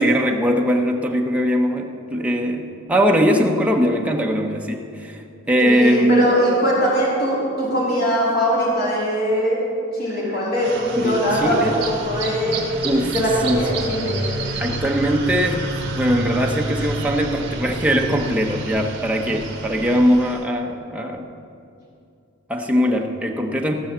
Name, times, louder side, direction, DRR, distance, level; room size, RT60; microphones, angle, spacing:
voice 1, 0.0-6.3 10.1-10.4 11.0-11.8 12.8-13.8 14.6-15.7 16.0-21.3 22.5-23.7, equal, 5° right, 1 dB, 0.8 m, -21 dB
voice 2, 5.6-9.6 9.9-11.6 11.9-12.6 13.1-14.3, equal, 45° left, -6 dB, 3.3 m, -21 dB
sound 1, 10.6-20.4, right 2 dB, 50° right, 1.8 m, -29 dB
15.5 x 6.2 x 7.3 m, 2.5 s
head